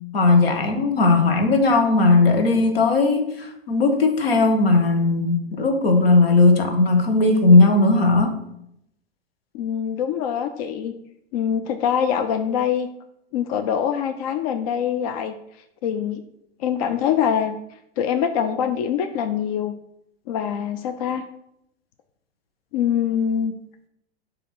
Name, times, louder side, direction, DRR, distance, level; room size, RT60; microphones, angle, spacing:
voice 1, 0.1-8.4, left 3 dB, 65° left, 6 dB, 1.1 m, -17 dB
voice 2, 9.5-10.9 11.3-12.9 13.3-15.3 15.8-16.2 16.6-17.5 18.0-19.7 20.3-21.2 22.7-23.5, left 8 dB, 40° left, 9 dB, 0.4 m, -24 dB
6.9 x 2.8 x 5.7 m, 0.77 s
figure-of-eight pair, 95°, 31 cm